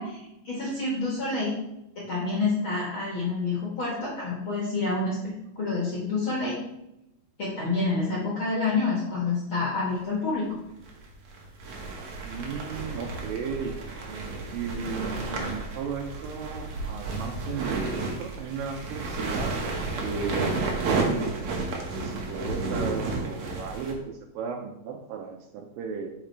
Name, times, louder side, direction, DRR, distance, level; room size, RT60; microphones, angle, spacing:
voice 1, 0.0-1.5 1.9-5.2 5.5-6.6 7.4-10.6, left 3 dB, 50° left, -5 dB, 1.5 m, -28 dB
sound 1, 9.9-10.0 10.8-23.9, right 3 dB, 60° right, 1.9 m, -32 dB
voice 2, 12.2-13.8 14.0-19.5 20.0-26.1, right 5 dB, 80° right, 3 dB, 2.2 m, -35 dB
8.7 x 5.3 x 3.3 m, 0.87 s
omnidirectional pair, 4.5 m